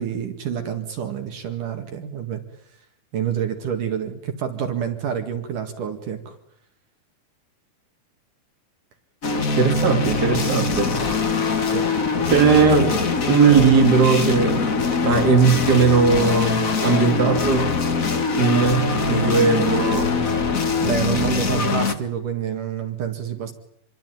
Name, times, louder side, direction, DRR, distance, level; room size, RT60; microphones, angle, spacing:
voice 1, 0.0-2.4 3.1-6.4 11.7-11.9 20.8-23.5, right 8 dB, 65° right, 3.4 m, -28 dB
sound 1, 9.2-21.9, left 4 dB, 40° left, 1.2 m, -22 dB
voice 2, 9.6-10.9 12.3-14.7 15.0-17.8 18.4-20.3, right 5 dB, 30° right, 3.2 m, -18 dB
27.0 x 22.5 x 9.3 m
omnidirectional pair, 4.2 m